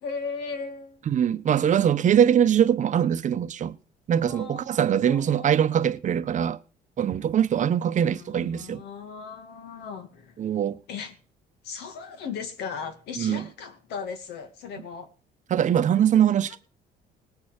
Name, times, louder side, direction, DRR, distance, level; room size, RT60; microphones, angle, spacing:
voice 1, 0.0-1.1 4.3-4.7 5.0-5.5 8.0-10.4 10.9-11.2 11.6-15.1 16.5-16.6, left 5 dB, 80° left, 2.3 m, -37 dB
voice 2, 1.1-3.8 4.1-6.6 7.0-8.8 10.4-10.8 13.2-13.4 15.5-16.6, right 9 dB, 45° right, 0.9 m, -22 dB
19.0 x 7.2 x 6.6 m
cardioid pair, 110°, 17 cm